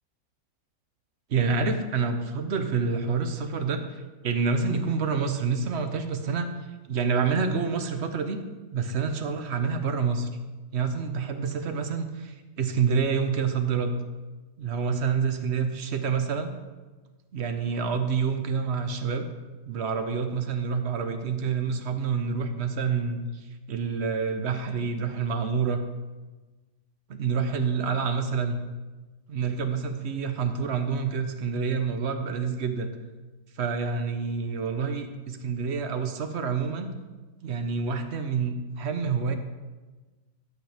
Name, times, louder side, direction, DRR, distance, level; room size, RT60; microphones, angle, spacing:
voice 1, 1.3-6.5 6.9-8.4 8.7-10.3 10.7-13.9 14.6-16.5 17.3-19.3 19.7-25.8 27.1-28.6 29.3-32.9 33.6-36.9 37.4-39.4, right 5 dB, 55° right, 7 dB, 1.0 m, -27 dB
12.0 x 8.0 x 3.4 m, 1.2 s
omnidirectional pair, 1.6 m